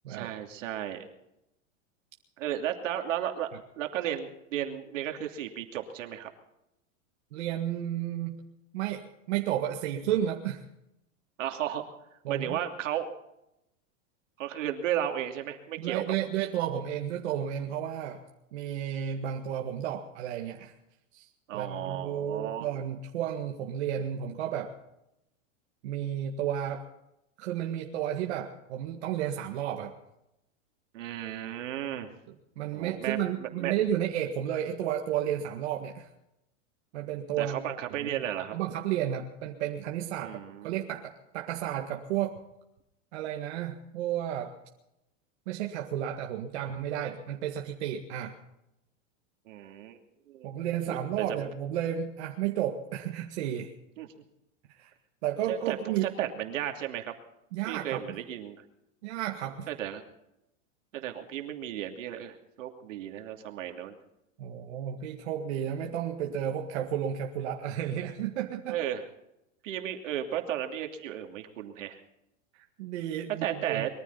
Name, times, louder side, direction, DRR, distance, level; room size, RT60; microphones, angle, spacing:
voice 1, 0.1-1.1 2.4-3.5 3.8-6.3 11.4-11.8 12.3-13.1 14.4-16.0 21.5-22.7 30.9-32.1 32.7-33.7 37.4-38.5 40.2-40.8 49.5-50.0 50.3-50.6 50.9-51.4 54.0-54.1 55.5-55.8 56.0-57.1 57.6-58.6 59.7-60.0 60.9-63.9 68.7-69.0 69.6-72.0 73.4-73.9, right 11 dB, 75° right, 4 dB, 2.8 m, -34 dB
voice 2, 7.3-8.4 8.7-9.0 9.3-10.6 12.3-12.6 15.8-18.2 18.5-20.7 21.1-21.3 21.5-24.7 25.8-26.9 27.4-29.9 32.6-36.1 36.9-37.6 37.9-38.2 38.5-40.4 40.6-42.3 43.1-44.5 45.5-48.3 50.4-53.7 54.7-54.9 55.2-56.1 57.5-58.2 59.0-59.7 64.4-68.8 72.5-73.9, right 10 dB, 60° right, 1 dB, 1.9 m, -32 dB
22.5 x 14.5 x 4.1 m, 0.84 s
supercardioid pair, 165°, 38 cm